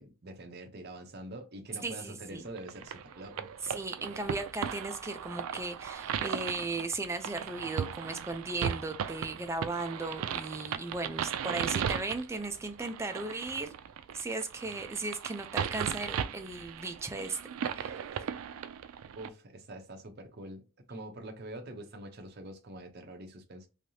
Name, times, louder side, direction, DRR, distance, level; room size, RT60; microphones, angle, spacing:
voice 1, 0.0-3.5 19.2-23.7, right 1 dB, 50° right, 0.7 m, -45 dB
voice 2, 1.8-2.5 3.6-13.7 14.1-17.4 17.7-18.2, right 3 dB, 15° right, 0.4 m, -36 dB
sound 1, 2.6-19.3, right 8 dB, 85° right, 0.3 m, -37 dB
3.3 x 2.7 x 2.7 m
head